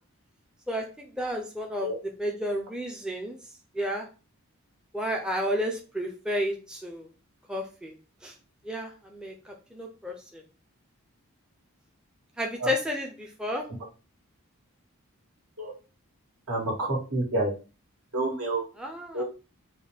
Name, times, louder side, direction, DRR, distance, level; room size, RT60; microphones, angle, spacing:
voice 1, 0.7-3.4 3.7-4.1 4.9-7.1 7.5-7.9 8.2-8.3 8.6-10.4 12.4-13.6 18.8-19.2, equal, 5° right, 0 dB, 0.4 m, -32 dB
voice 2, 16.5-17.5 18.1-18.6 19.1-19.2, right 2 dB, 75° right, -2 dB, 1.6 m, -28 dB
4.0 x 2.2 x 3.3 m, 0.33 s
head